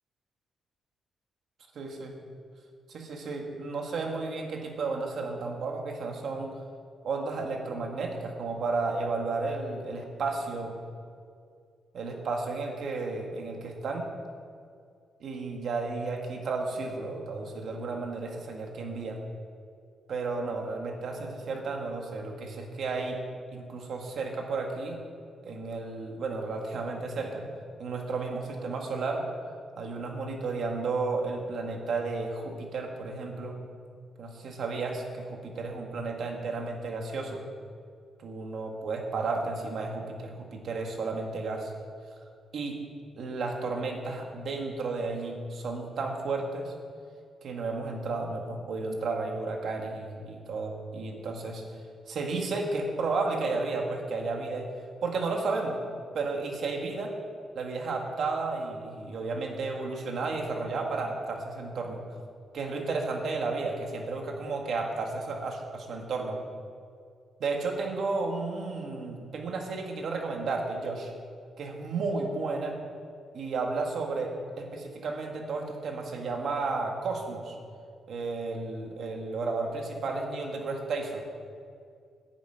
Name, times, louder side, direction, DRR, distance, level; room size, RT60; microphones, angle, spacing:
voice 1, 1.8-2.1 2.9-6.6 7.0-10.7 11.9-14.1 15.2-19.2 20.1-23.2 23.5-25.0 25.4-27.5 27.8-29.2 29.8-33.6 34.2-37.4 38.2-41.7 42.5-42.8 43.2-46.7 47.4-51.8 52.1-54.7 55.0-55.8 56.1-57.1 57.6-62.0 62.5-66.4 67.4-71.1 71.6-72.8 73.3-77.6 78.1-81.2, right 3 dB, 55° right, 2 dB, 1.8 m, -33 dB
10.0 x 7.5 x 9.0 m, 2.3 s
wide cardioid pair, 180°, 0 cm